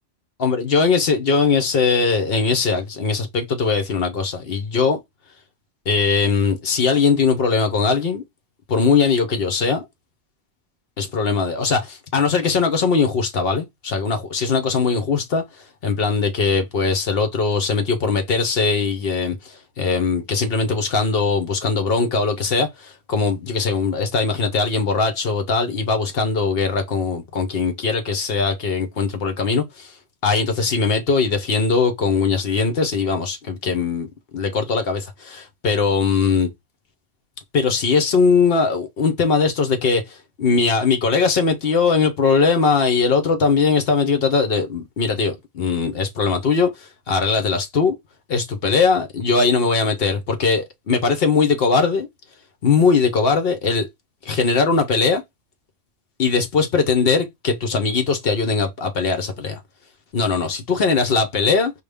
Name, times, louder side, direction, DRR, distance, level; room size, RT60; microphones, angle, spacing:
voice 1, 0.4-5.0 5.9-8.2 8.7-9.8 11.0-15.4 15.8-29.9 30.2-36.5 37.5-48.0 48.3-52.1 52.6-53.9 54.2-55.2 56.2-59.6 60.1-61.7, left 4 dB, 60° left, 0.9 m, -20 dB
4.9 x 2.2 x 3.4 m
omnidirectional pair, 1.2 m